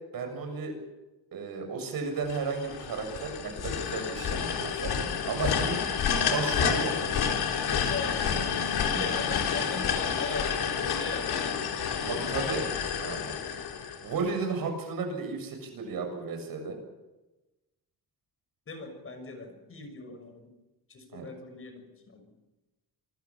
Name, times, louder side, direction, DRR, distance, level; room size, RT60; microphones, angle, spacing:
voice 1, 0.1-0.8 1.3-4.9 5.2-5.8 6.3-7.0 8.9-9.1 12.0-12.6 13.0-13.3 14.0-16.8 21.1-21.3, right 4 dB, 60° right, 5 dB, 7.3 m, -33 dB
sound 1, 2.3-14.4, left 7 dB, 75° left, 4.0 m, -29 dB
voice 2, 7.9-8.2 8.9-11.6 18.7-20.5 20.9-22.2, left 3 dB, 35° left, 6 dB, 6.4 m, -39 dB
27.0 x 21.0 x 7.3 m, 1.0 s
wide cardioid pair, 170°, 39 cm